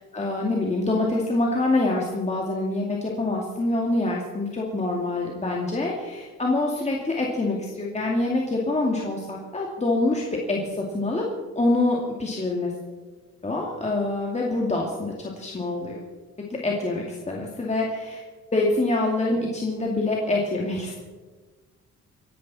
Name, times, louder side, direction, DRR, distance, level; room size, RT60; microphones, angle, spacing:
voice 1, 0.0-11.2 11.5-12.7 13.4-16.0 16.5-18.2 18.5-20.9, left 2 dB, 20° left, -2 dB, 2.5 m, -25 dB
26.5 x 10.5 x 4.2 m, 1.4 s
cardioid pair, 90°, 30 cm